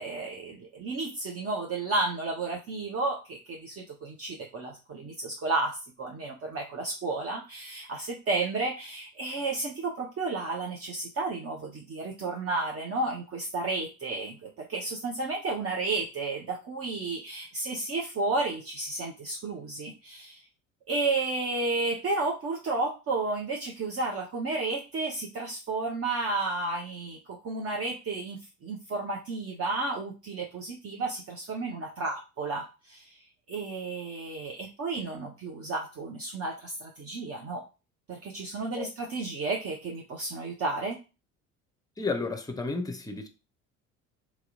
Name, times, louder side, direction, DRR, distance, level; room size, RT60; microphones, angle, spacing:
voice 1, 0.0-20.4 20.9-33.1 33.5-37.6 38.1-41.0, right 3 dB, 35° right, 0.9 m, -32 dB
voice 2, 42.0-43.3, left 3 dB, 10° left, 0.7 m, -32 dB
3.0 x 2.9 x 3.7 m
figure-of-eight pair, 60°, 41 cm